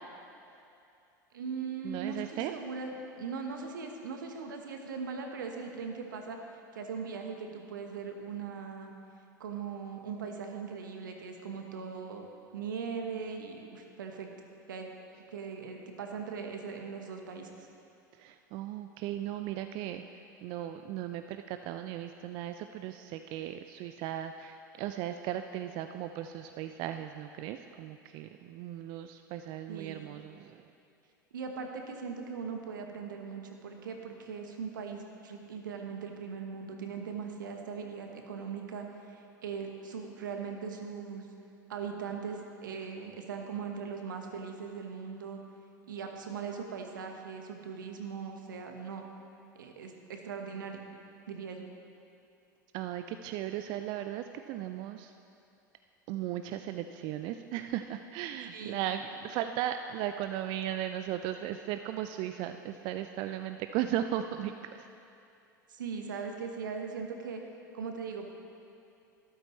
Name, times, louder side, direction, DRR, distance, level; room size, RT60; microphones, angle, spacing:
voice 1, 1.3-2.9 3.2-6.4 6.7-8.9 9.4-12.2 12.5-14.3 14.7-14.9 15.3-17.7 29.7-30.0 31.3-41.3 41.7-45.4 45.9-49.1 49.5-50.9 51.3-51.7 58.5-58.8 65.7-67.4 67.7-68.3, right 5 dB, 70° right, 3 dB, 1.1 m, -40 dB
voice 2, 1.8-2.5 18.2-20.0 20.4-30.7 52.7-55.1 56.1-64.9, right 11 dB, 45° right, 8 dB, 0.4 m, -36 dB
12.5 x 12.0 x 3.1 m, 2.6 s
figure-of-eight pair, 80°, 11 cm